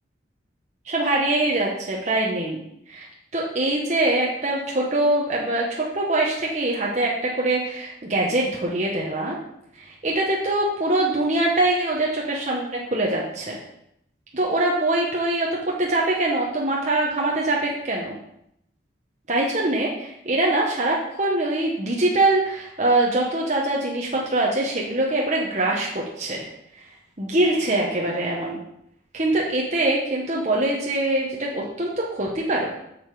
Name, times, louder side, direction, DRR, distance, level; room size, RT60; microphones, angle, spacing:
voice 1, 0.8-2.6 2.9-9.4 9.8-13.6 14.3-18.2 19.3-26.4 26.8-26.9 27.2-28.6 29.1-32.7, right 2 dB, 40° right, -2 dB, 1.1 m, -23 dB
7.3 x 6.8 x 4.9 m, 0.77 s
head